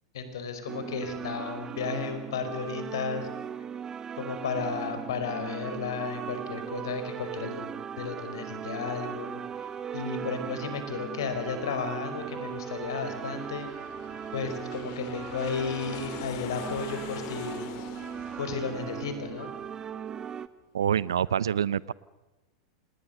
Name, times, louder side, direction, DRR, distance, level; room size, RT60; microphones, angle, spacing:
voice 1, 0.1-3.3 4.1-9.7 9.9-13.7 14.3-17.7 18.4-19.5, left 5 dB, 70° left, 9 dB, 5.0 m, -34 dB
sound 1, 0.7-20.5, right 8 dB, 25° right, 1.1 m, -38 dB
Aircraft, 9.2-20.3, left 13 dB, 55° left, 1.9 m, -47 dB
voice 2, 20.7-21.9, right 9 dB, 75° right, 21 dB, 0.7 m, -26 dB
28.0 x 20.0 x 6.7 m, 1.1 s
hypercardioid pair, 95°, 2 cm